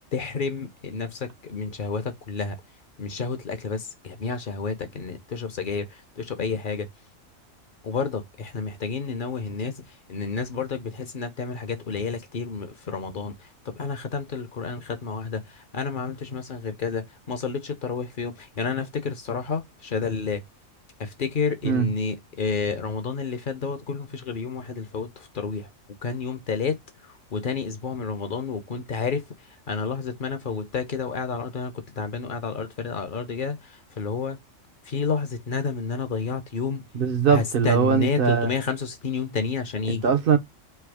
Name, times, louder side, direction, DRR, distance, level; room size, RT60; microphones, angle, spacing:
voice 1, 0.1-2.6 3.0-6.9 7.8-20.4 21.0-25.7 26.0-34.4 34.8-36.9 37.3-40.1, left 5 dB, 50° left, 0.6 m, -30 dB
voice 2, 36.9-38.5 39.9-40.4, right 7 dB, 60° right, 0.6 m, -21 dB
3.4 x 2.7 x 4.6 m
omnidirectional pair, 1.4 m